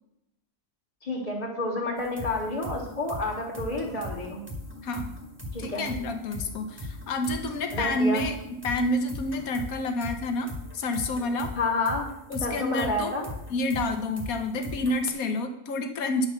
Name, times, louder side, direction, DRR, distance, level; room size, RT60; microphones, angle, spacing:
voice 1, 1.0-4.4 5.5-5.8 7.7-8.3 11.6-12.1 12.4-13.3, left 2 dB, 25° left, -6 dB, 2.3 m, -29 dB
sound 1, 2.0-15.1, left 1 dB, 10° right, 2.0 m, -40 dB
voice 2, 5.6-8.4 8.6-11.5 12.3-13.2 13.5-16.3, left 2 dB, 70° left, 6 dB, 1.6 m, -29 dB
10.0 x 5.8 x 7.0 m, 0.83 s
omnidirectional pair, 1.6 m